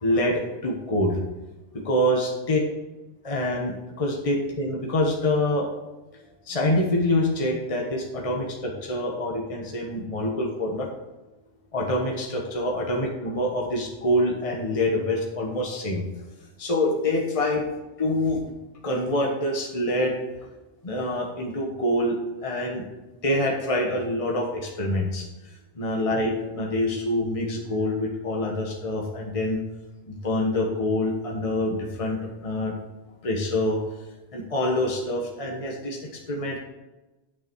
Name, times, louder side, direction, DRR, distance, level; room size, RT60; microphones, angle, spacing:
voice 1, 0.0-1.2 1.8-2.6 3.2-5.7 6.5-10.9 11.7-16.0 16.6-17.6 18.0-18.5 18.8-20.1 20.8-22.2 22.4-22.8 23.2-25.3 25.8-29.6 30.1-32.7 33.2-33.8 34.3-36.6, left 1 dB, 30° left, 0 dB, 1.3 m, -26 dB
8.8 x 6.9 x 4.7 m, 1.1 s
omnidirectional pair, 1.2 m